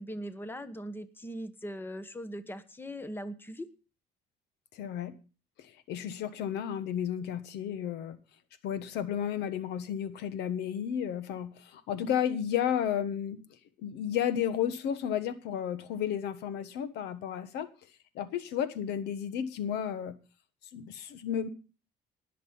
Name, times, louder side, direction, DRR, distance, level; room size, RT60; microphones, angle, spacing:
voice 1, 0.0-3.7, equal, 10° left, 12 dB, 1.3 m, -40 dB
voice 2, 4.7-5.1 5.6-8.2 8.6-13.4 13.8-17.7 18.1-20.1 20.7-21.5, left 9 dB, 80° left, 13 dB, 1.4 m, -32 dB
19.5 x 6.8 x 5.5 m, 0.34 s
cardioid pair, 110°, 17 cm